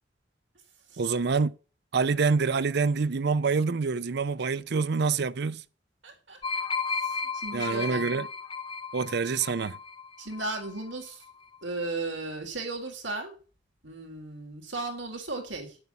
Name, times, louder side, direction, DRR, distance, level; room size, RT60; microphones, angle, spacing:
voice 1, 1.0-1.6 1.9-5.6 7.5-8.3 8.9-9.8, right 4 dB, 65° right, 0.5 m, -26 dB
voice 2, 6.0-6.4 7.0-8.1 10.2-11.2 11.6-13.4 13.8-15.8, right 2 dB, 80° right, 3.4 m, -36 dB
sound 1, 6.4-11.0 11.3-11.6, left 5 dB, 30° left, 1.0 m, -34 dB
9.7 x 7.9 x 6.9 m
head